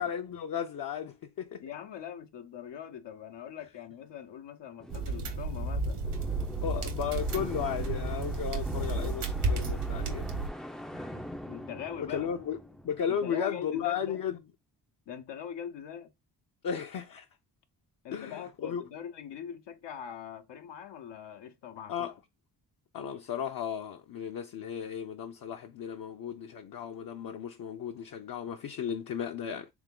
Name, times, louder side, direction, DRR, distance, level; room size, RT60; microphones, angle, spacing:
voice 1, 0.0-1.6 6.6-10.3 12.1-12.6 12.8-14.4 16.6-17.2 18.1-18.8 21.9-22.1 22.9-29.7, left 8 dB, 55° left, 0.6 m, -35 dB
voice 2, 1.6-6.0 10.9-12.3 13.1-14.2 15.1-16.1 18.0-22.1, left 9 dB, 80° left, 0.8 m, -42 dB
sound 1, 4.8-13.6, equal, ahead, 0.3 m, -44 dB
sound 2, 4.9-10.5, right 3 dB, 75° right, 1.2 m, -32 dB
3.5 x 3.5 x 3.7 m
cardioid pair, 95°, 42 cm